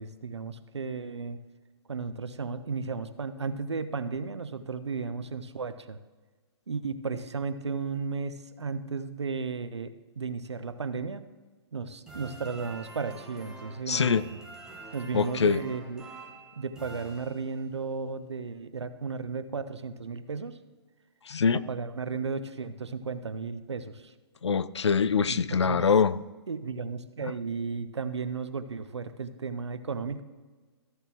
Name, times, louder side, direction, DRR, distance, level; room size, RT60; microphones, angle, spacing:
voice 1, 0.0-1.4 1.9-6.0 6.7-11.2 11.7-14.2 14.9-16.1 16.6-20.6 21.5-24.1 25.3-25.8 26.5-30.2, right 5 dB, 80° right, 12 dB, 0.7 m, -34 dB
sound 1, 12.1-17.8, right 3 dB, 5° right, 1.2 m, -46 dB
voice 2, 13.9-14.2 15.1-15.6 21.3-21.6 24.4-26.2, left 6 dB, 85° left, 17 dB, 0.4 m, -24 dB
14.0 x 6.8 x 3.0 m, 1.3 s
figure-of-eight pair, 130°, 14 cm